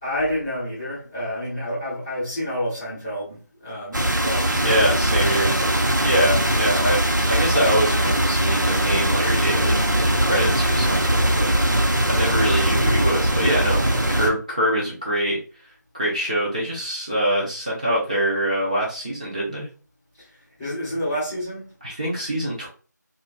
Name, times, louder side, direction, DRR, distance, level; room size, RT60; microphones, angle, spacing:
voice 1, 0.0-5.8 20.2-21.7, equal, 5° left, 0.8 m, -30 dB
sound 1, 3.9-14.3, right 1 dB, 80° right, 1.0 m, -21 dB
voice 2, 4.5-5.5 6.0-11.5 12.1-15.4 15.9-19.7 21.8-22.7, right 1 dB, 25° right, 0.7 m, -24 dB
2.8 x 2.5 x 3.4 m
figure-of-eight pair, 175°, 10 cm